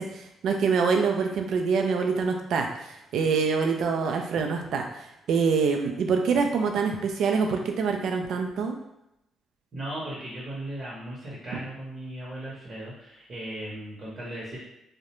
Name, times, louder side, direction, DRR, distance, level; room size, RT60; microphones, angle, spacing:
voice 1, 0.0-8.8, right 5 dB, 75° right, 3 dB, 0.3 m, -25 dB
voice 2, 9.7-14.6, right 1 dB, 45° right, -6 dB, 0.8 m, -37 dB
2.4 x 2.1 x 2.9 m, 0.85 s
cardioid pair, 90°, 0 cm